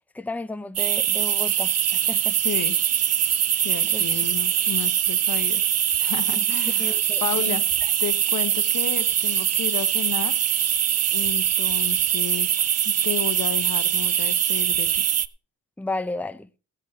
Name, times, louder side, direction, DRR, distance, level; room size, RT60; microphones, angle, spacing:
voice 1, 0.1-2.4 3.8-4.1 6.3-7.6 15.8-16.5, left 2 dB, 5° left, 0.7 m, -33 dB
sound 1, 0.8-15.3, right 10 dB, 55° right, 0.7 m, -23 dB
voice 2, 2.4-2.7 3.6-5.6 6.0-7.6 8.0-10.4 11.1-12.6 12.8-15.0, left 11 dB, 80° left, 1.1 m, -32 dB
16.5 x 7.9 x 4.3 m
cardioid pair, 85°, 30 cm